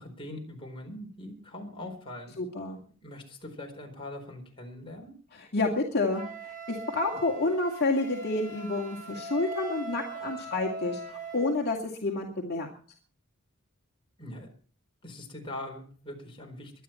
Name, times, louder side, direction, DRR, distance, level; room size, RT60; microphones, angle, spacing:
voice 1, 0.0-2.3 3.0-5.1 14.2-14.5 15.0-16.7, left 1 dB, 25° left, 2 dB, 4.3 m, -42 dB
voice 2, 2.4-2.8 5.3-12.7, left 2 dB, 50° left, 0 dB, 2.3 m, -29 dB
Wind instrument woodwind instrument, 6.1-11.6, right 1 dB, 40° right, 7.2 m, -40 dB
23.0 x 9.8 x 4.4 m, 0.43 s
head